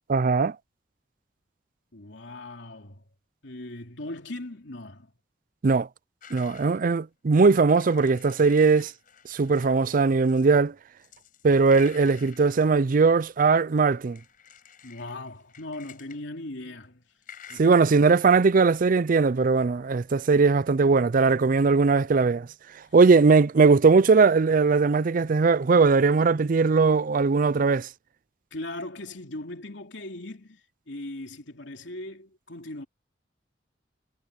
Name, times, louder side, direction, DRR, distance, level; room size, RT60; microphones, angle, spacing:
voice 1, 0.1-0.6 5.6-5.9 6.3-8.9 9.3-10.7 11.4-14.2 17.6-22.5 22.9-27.9, right 4 dB, 50° right, 0.4 m, -20 dB
voice 2, 1.9-3.0 3.4-5.1 14.8-17.0 17.5-17.8 28.5-30.6 30.9-32.9, left 1 dB, 85° left, 3.0 m, -39 dB
sound 1, 6.2-6.8 7.6-9.7 10.3-10.7 11.0-12.7 13.9-16.2 17.2-17.6, left 8 dB, 50° left, 5.1 m, -50 dB
head